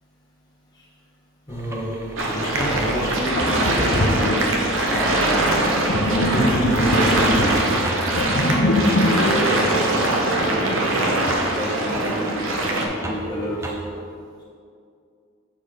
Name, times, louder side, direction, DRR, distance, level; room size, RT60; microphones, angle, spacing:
voice 1, 1.5-2.0 2.3-5.5 6.1-7.8 8.6-10.8 11.5-13.7, equal, 20° left, -6 dB, 1.3 m, -28 dB
sound 1, 1.5-13.8, right 2 dB, 15° right, 0.5 m, -35 dB
sound 2, 2.2-12.8, right 2 dB, 75° right, 1.0 m, -22 dB
Sink (filling or washing), 2.7-2.8 3.4-10.7, left 1 dB, 80° left, 0.8 m, -24 dB
7.3 x 4.4 x 4.9 m, 2.4 s
head